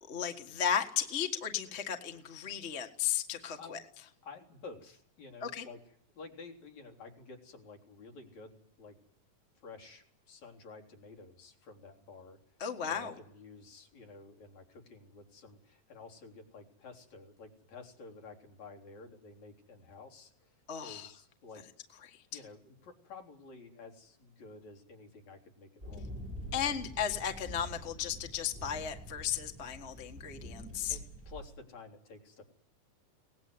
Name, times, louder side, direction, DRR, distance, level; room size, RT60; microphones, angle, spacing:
voice 1, 0.1-3.8 5.4-5.6 12.6-13.1 20.7-21.1 22.0-22.2 26.5-31.0, left 8 dB, 35° left, 5 dB, 1.1 m, -35 dB
voice 2, 3.4-3.8 4.2-9.0 9.6-21.6 22.3-26.2 26.5-26.9 30.9-31.0 31.3-32.4, left 3 dB, 60° left, 2 dB, 4.6 m, -51 dB
sound 1, 25.8-31.4, equal, 15° right, 6.3 m, -46 dB
23.5 x 19.0 x 9.7 m, 0.67 s
omnidirectional pair, 3.8 m